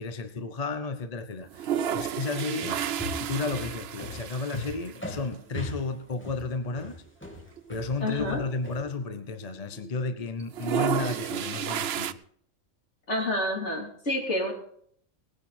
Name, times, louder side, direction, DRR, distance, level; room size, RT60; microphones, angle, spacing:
voice 1, 0.0-2.8 3.2-7.0 7.7-12.2, left 3 dB, 35° left, 9 dB, 0.8 m, -33 dB
sound 1, 1.4-5.0 5.3-5.4 5.6-5.7 6.7-6.9 7.3-7.4 7.6-9.5 9.7-10.1 10.4-12.1, right 9 dB, 60° right, 0.8 m, -32 dB
sound 2, 2.6-8.8, left 2 dB, 10° left, 2.6 m, -39 dB
voice 2, 8.0-8.4 13.1-14.5, left 1 dB, 55° left, -1 dB, 4.0 m, -28 dB
19.0 x 10.0 x 4.4 m, 0.64 s
omnidirectional pair, 1.4 m